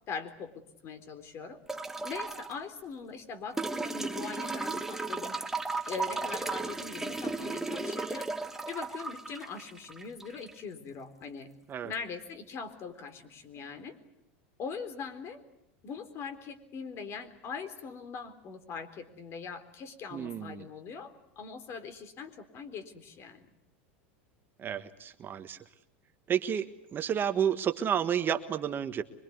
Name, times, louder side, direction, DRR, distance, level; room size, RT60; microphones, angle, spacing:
voice 1, 0.1-1.6 2.0-5.4 5.9-8.3 8.7-11.5 11.8-14.0 14.6-15.4 15.8-23.5, left 5 dB, 40° left, 11 dB, 3.9 m, -41 dB
sound 1, 1.7-2.5 3.6-10.6 11.9-12.0, right 3 dB, 5° right, 1.7 m, -35 dB
voice 2, 20.1-20.6 24.6-25.6 26.3-29.0, right 8 dB, 30° right, 9 dB, 1.4 m, -31 dB
25.5 x 23.0 x 9.6 m, 0.79 s
supercardioid pair, 115°, 7 cm